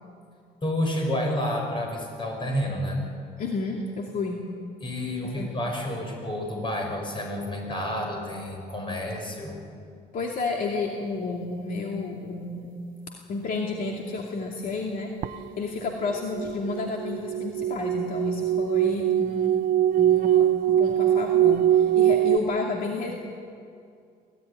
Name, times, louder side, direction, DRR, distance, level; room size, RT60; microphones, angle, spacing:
voice 1, 0.6-3.1 4.8-9.6, left 1 dB, 30° left, 2 dB, 6.4 m, -29 dB
voice 2, 3.4-4.4 5.2-5.5 10.1-12.7 13.1-19.6 20.0-23.1, left 3 dB, 55° left, 0 dB, 2.5 m, -31 dB
sound 1, 15.2-15.3 16.1-22.4, right 11 dB, 55° right, 0.7 m, -22 dB
24.0 x 16.0 x 10.0 m, 2.4 s
cardioid pair, 110°, 17 cm